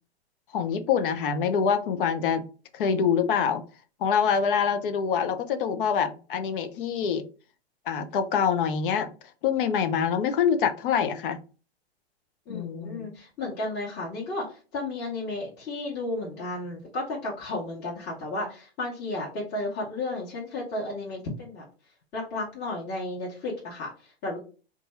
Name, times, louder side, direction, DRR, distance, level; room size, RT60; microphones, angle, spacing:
voice 1, 0.5-2.4 2.7-3.6 4.0-7.2 7.9-9.1 9.4-11.4 12.5-13.1, left 7 dB, 55° left, 8 dB, 0.6 m, -25 dB
voice 2, 12.5-21.6 22.1-24.4, left 2 dB, 30° left, -5 dB, 1.3 m, -33 dB
2.6 x 2.4 x 4.1 m, 0.36 s
hypercardioid pair, 120°, 32 cm